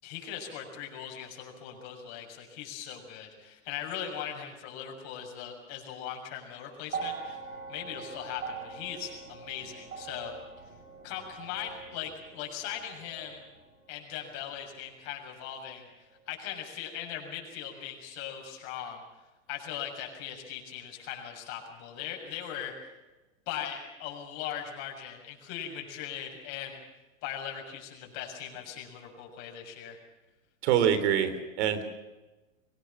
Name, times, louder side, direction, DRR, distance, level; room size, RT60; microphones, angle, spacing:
voice 1, 0.0-7.4 7.7-10.3 11.0-13.4 13.9-15.9 16.3-19.0 19.5-22.7 23.5-26.8 27.2-30.0, left 9 dB, 45° left, 2 dB, 6.9 m, -39 dB
sound 1, 6.9-15.2 16.3-16.4, right 5 dB, 80° right, 7.4 m, -43 dB
voice 2, 30.6-31.8, right 9 dB, 55° right, 11 dB, 3.7 m, -25 dB
23.5 x 18.5 x 7.1 m, 1.1 s
hypercardioid pair, 120°, 40 cm